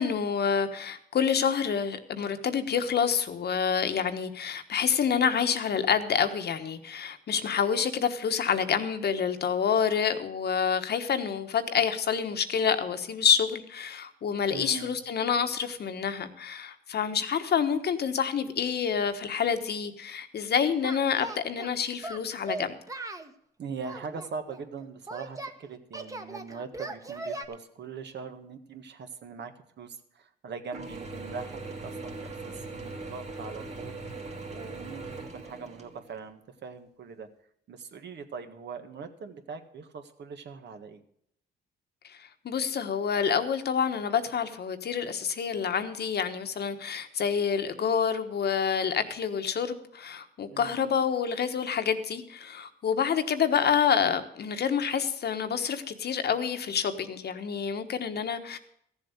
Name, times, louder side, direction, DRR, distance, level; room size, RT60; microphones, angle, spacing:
voice 1, 0.0-22.7 42.1-58.6, left 7 dB, 55° left, 8 dB, 1.3 m, -28 dB
voice 2, 14.5-15.0 23.6-34.0 34.5-37.3 37.7-41.0 50.5-50.9, right 5 dB, 60° right, 7 dB, 1.6 m, -41 dB
Singing, 20.8-21.7 22.0-23.3 23.8-25.6 25.9-27.5, right 2 dB, 15° right, 1.2 m, -38 dB
Mechanisms / Drill, 30.7-36.2, right 3 dB, 35° right, 2.2 m, -40 dB
14.5 x 7.4 x 6.6 m, 0.71 s
cardioid pair, 90°, 20 cm